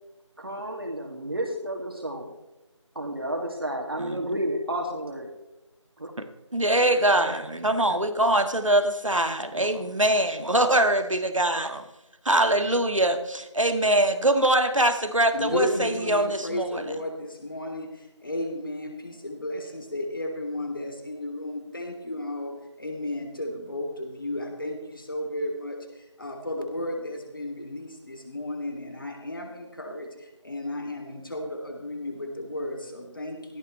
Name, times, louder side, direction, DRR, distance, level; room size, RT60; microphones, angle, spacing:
voice 1, 0.4-2.3 3.0-5.3 6.0-6.1, right 1 dB, 50° right, 1 dB, 2.4 m, -31 dB
voice 2, 6.5-11.8 12.3-16.8, right 1 dB, 90° right, 7 dB, 1.8 m, -23 dB
voice 3, 15.3-33.6, left 1 dB, 45° left, 3 dB, 2.9 m, -33 dB
16.5 x 15.0 x 3.3 m, 0.98 s
figure-of-eight pair, 170°, 16 cm